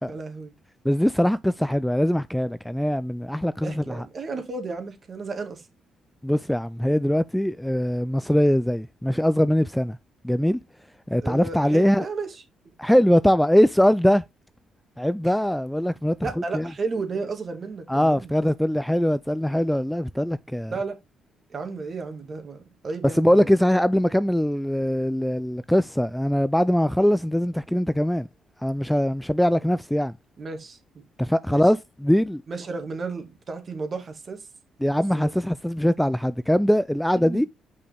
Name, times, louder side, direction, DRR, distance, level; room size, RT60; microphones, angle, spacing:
voice 1, 0.1-0.5 3.6-5.7 11.2-12.4 15.2-15.3 16.2-18.5 20.7-21.0 21.5-23.5 30.4-31.0 31.5-31.6 32.5-34.5 34.9-35.3 37.2-37.5, right 4 dB, 45° right, 2.0 m, -33 dB
voice 2, 0.8-4.1 6.2-10.0 10.2-10.6 11.1-12.1 12.8-14.2 15.0-16.3 16.5-16.7 17.9-20.7 23.1-28.3 28.6-30.2 31.2-32.4 34.8-37.4, equal, 5° left, 0.3 m, -22 dB
6.4 x 5.4 x 3.4 m
cardioid pair, 90°, 0 cm